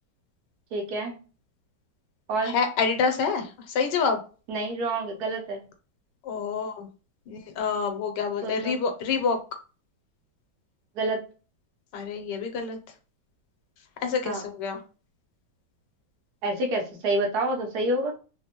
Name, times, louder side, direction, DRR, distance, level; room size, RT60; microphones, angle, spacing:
voice 1, 0.7-1.2 2.3-2.6 4.5-5.7 8.4-8.8 11.0-11.2 14.2-14.4 16.4-18.1, right 2 dB, 70° right, 2 dB, 1.1 m, -28 dB
voice 2, 2.4-4.2 6.2-6.9 7.3-9.4 11.9-12.8 14.0-14.8, left 5 dB, 80° left, 5 dB, 1.3 m, -27 dB
3.2 x 2.0 x 2.8 m, 0.35 s
omnidirectional pair, 1.9 m